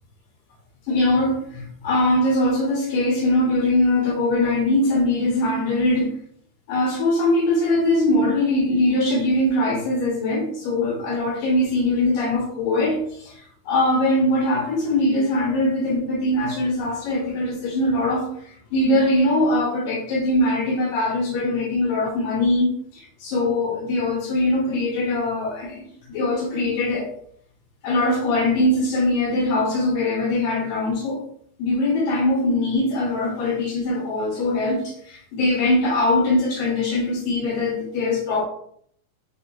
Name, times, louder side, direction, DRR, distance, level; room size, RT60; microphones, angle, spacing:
voice 1, 0.9-6.2 6.7-22.7 22.9-25.8 26.1-27.1 27.8-31.2 31.6-38.4, left 1 dB, 75° left, 2.2 m, -22 dB
6.8 x 2.7 x 2.6 m
omnidirectional pair, 4.4 m